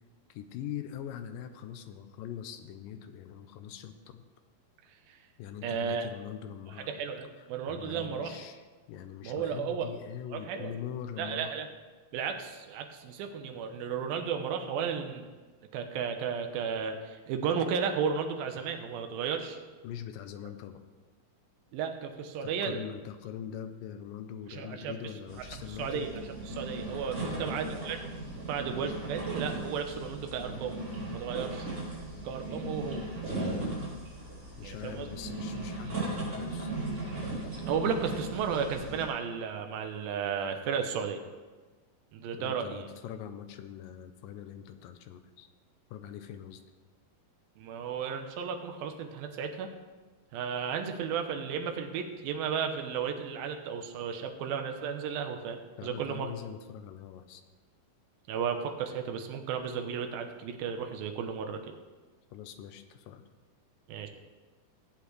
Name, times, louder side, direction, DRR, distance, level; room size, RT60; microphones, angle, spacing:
voice 1, 0.3-4.2 5.4-6.9 7.7-8.6 8.9-11.6 19.8-20.8 22.4-26.1 27.2-27.6 34.6-36.7 42.4-45.5 45.9-46.6 55.8-57.4 62.3-63.2, left 9 dB, 80° left, 8 dB, 2.2 m, -42 dB
voice 2, 4.9-5.2 5.6-6.1 6.8-8.5 9.2-9.9 10.3-10.7 11.2-11.7 12.1-15.3 15.7-19.6 21.7-22.8 24.5-25.0 25.5-26.1 26.5-28.1 28.5-30.8 31.1-31.7 32.2-33.0 34.6-35.1 37.7-41.2 42.1-42.9 47.6-49.7 50.3-56.3 58.3-61.6 63.9-64.1, right 7 dB, 80° right, 5 dB, 2.6 m, -34 dB
sound 1, 25.3-39.1, right 2 dB, 25° right, 3.9 m, -37 dB
17.5 x 8.4 x 3.3 m, 1.3 s
omnidirectional pair, 4.3 m